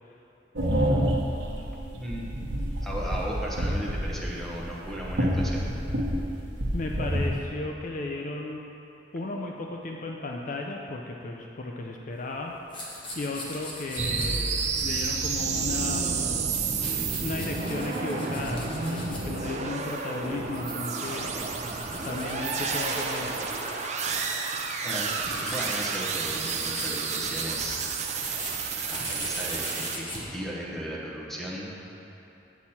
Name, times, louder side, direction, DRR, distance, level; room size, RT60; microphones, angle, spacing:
sound 1, 0.6-7.4, equal, 70° right, 1.1 m, -28 dB
voice 1, 2.8-5.7 24.8-25.1 25.4-27.8 28.9-31.7, equal, ahead, -5 dB, 1.1 m, -36 dB
voice 2, 6.7-8.6 9.1-12.6 13.1-16.3 17.2-21.4 22.0-23.3, left 2 dB, 45° left, 0 dB, 0.5 m, -35 dB
sound 2, 12.1-15.9 16.1-19.3 19.9-24.5 24.9-25.9 26.1-26.2 26.4-30.2, left 1 dB, 25° left, 1.2 m, -41 dB
sound 3, 14.0-30.0, right 5 dB, 40° right, 0.5 m, -30 dB
8.1 x 7.2 x 4.3 m, 2.9 s
head